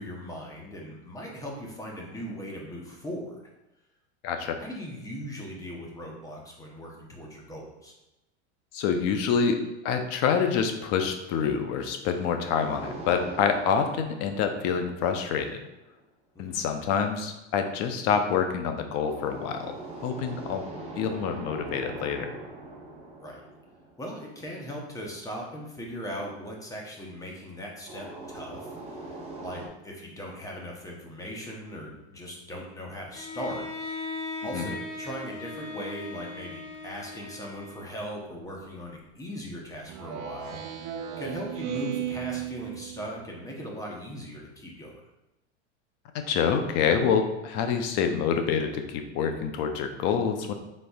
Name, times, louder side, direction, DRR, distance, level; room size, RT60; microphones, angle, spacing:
voice 1, 0.0-3.4 4.6-7.9 16.3-16.6 23.2-23.4 24.0-34.1 34.4-45.0, equal, 10° left, -1 dB, 0.9 m, -39 dB
voice 2, 4.2-4.6 8.7-9.6 9.8-15.6 16.4-19.7 20.0-20.6 21.0-22.4 34.5-34.7 46.1-50.5, left 6 dB, 45° left, 6 dB, 0.7 m, -27 dB
sound 1, 12.5-15.6 19.0-24.4 27.9-29.7, right 2 dB, 20° right, 0.9 m, -41 dB
Bowed string instrument, 33.1-38.2, left 2 dB, 85° left, 0.8 m, -38 dB
Speech synthesizer, 39.9-43.4, right 11 dB, 40° right, 0.5 m, -35 dB
5.4 x 3.7 x 2.3 m, 0.96 s
supercardioid pair, 125°, 35 cm